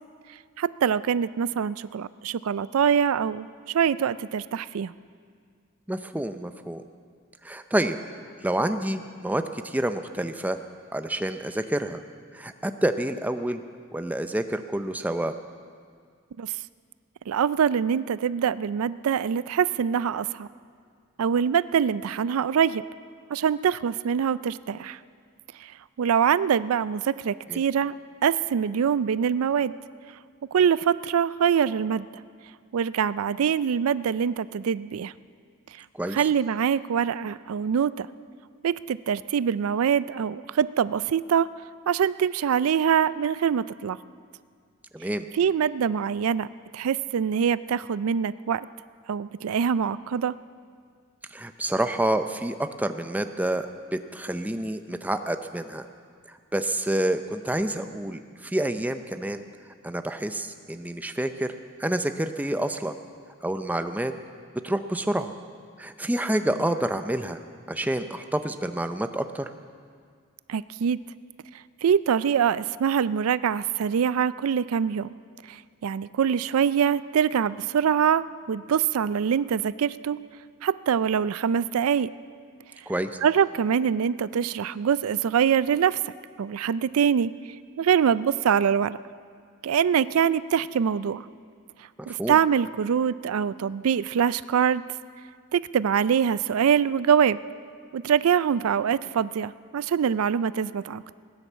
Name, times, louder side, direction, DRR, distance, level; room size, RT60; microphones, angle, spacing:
voice 1, 0.6-4.9 16.4-16.5 17.3-20.5 21.2-22.8 23.3-25.0 25.6-25.7 26.0-27.9 28.2-29.7 30.5-32.1 32.7-35.1 35.8-35.9 36.1-38.1 38.6-41.5 41.9-44.0 45.3-46.5 46.7-48.7 49.1-50.3 70.5-71.0 71.8-75.1 75.5-80.2 80.6-82.1 83.2-86.0 86.4-87.3 87.8-89.0 89.6-91.3 92.1-94.8 95.5-97.4 97.9-101.0, right 7 dB, 90° right, 17 dB, 0.4 m, -24 dB
voice 2, 5.9-6.8 7.4-8.0 8.4-10.6 10.9-12.0 12.3-13.6 13.9-15.3 27.5-27.6 35.9-36.2 44.9-45.3 51.3-55.9 56.3-59.4 59.8-61.5 61.8-62.9 63.4-64.1 64.6-65.3 65.8-67.4 67.7-69.5 82.9-83.2 92.1-92.4, right 1 dB, 10° right, 8 dB, 0.5 m, -28 dB
18.5 x 10.0 x 7.4 m, 2.1 s
head